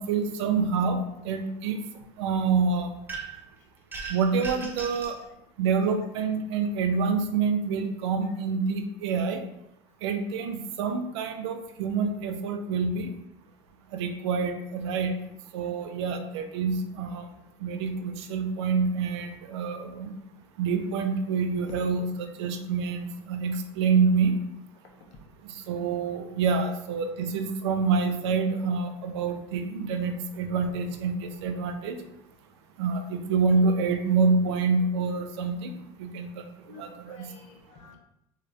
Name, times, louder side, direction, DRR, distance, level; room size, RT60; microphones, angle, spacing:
voice 1, 0.0-1.8 2.2-2.9 4.1-5.2 5.6-9.4 10.0-13.1 13.9-15.2 15.5-17.3 17.6-20.1 20.6-24.4 25.4-32.0 32.8-37.3, right 5 dB, 80° right, 6 dB, 0.4 m, -27 dB
sound 1, 3.1-3.5 3.9-5.2, right 4 dB, 15° right, 0.7 m, -37 dB
voice 2, 36.7-38.0, left 5 dB, 60° left, 1 dB, 0.7 m, -49 dB
3.1 x 2.6 x 2.5 m, 0.83 s
hypercardioid pair, 90°, 14 cm